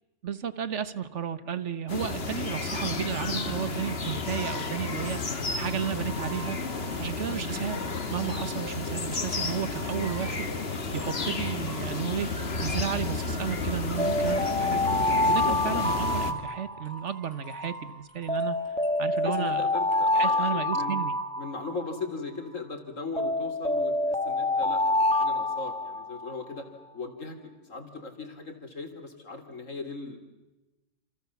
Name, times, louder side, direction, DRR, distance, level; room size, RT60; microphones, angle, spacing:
voice 1, 0.2-6.6 7.0-7.8 8.1-14.8 15.3-18.6 19.0-19.6 20.1-21.2, right 8 dB, 65° right, 14 dB, 1.4 m, -33 dB
sound 1, 1.9-16.3, left 3 dB, 50° left, 2.0 m, -32 dB
Deck The Halls Musicbox, 2.7-20.6, right 1 dB, 15° right, 6.7 m, -48 dB
sound 2, 14.0-17.2 18.3-22.0 23.2-26.4, left 2 dB, 5° left, 1.3 m, -27 dB
voice 2, 15.2-15.6 19.2-20.9 21.4-26.7 26.9-30.2, left 3 dB, 80° left, 7 dB, 3.5 m, -38 dB
28.0 x 27.5 x 7.1 m, 1.1 s
omnidirectional pair, 1.3 m